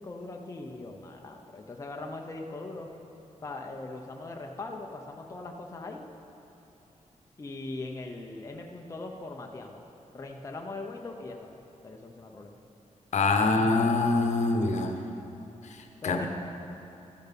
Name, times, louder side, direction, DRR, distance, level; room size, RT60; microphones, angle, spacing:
voice 1, 0.0-2.9 3.4-6.0 7.4-12.6 16.0-16.3, left 2 dB, 25° left, 1 dB, 0.6 m, -40 dB
voice 2, 13.1-15.0 15.6-16.3, left 3 dB, 65° left, 4 dB, 0.9 m, -25 dB
13.0 x 7.1 x 5.8 m, 3.0 s
wide cardioid pair, 175°, 13 cm